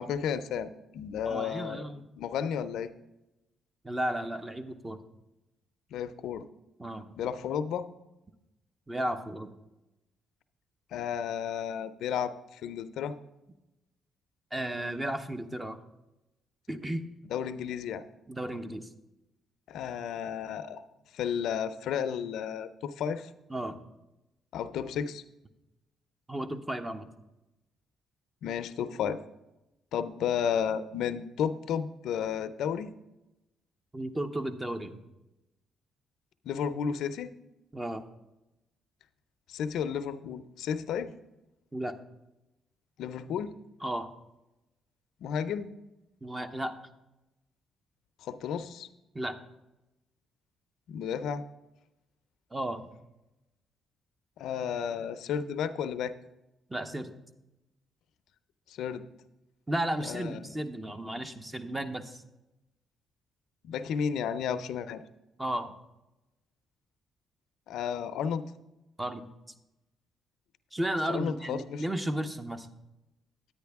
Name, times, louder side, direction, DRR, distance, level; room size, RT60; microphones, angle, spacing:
voice 1, 0.0-1.8 2.2-2.9 5.9-6.5 7.2-7.9 10.9-13.1 17.3-18.0 19.7-20.8 21.1-23.3 24.5-25.2 28.4-29.2 29.9-32.9 36.5-37.3 39.5-41.1 43.0-43.5 45.2-45.7 48.2-48.9 50.9-51.4 54.4-56.1 58.7-59.1 60.0-60.5 63.6-65.0 67.7-68.4 71.1-71.8, left 8 dB, 80° left, 13 dB, 0.4 m, -32 dB
voice 2, 1.2-2.1 3.8-5.0 6.8-7.1 8.9-9.5 14.5-15.8 16.7-17.0 18.3-18.9 23.5-23.8 26.3-27.1 33.9-35.0 37.7-38.0 41.7-42.0 43.8-44.1 46.2-46.8 49.1-49.4 52.5-52.9 56.7-57.1 59.7-62.2 65.4-65.7 69.0-69.3 70.7-72.7, right 1 dB, 15° right, 9 dB, 0.8 m, -34 dB
9.9 x 9.4 x 3.5 m, 0.96 s
cardioid pair, 90°, 0 cm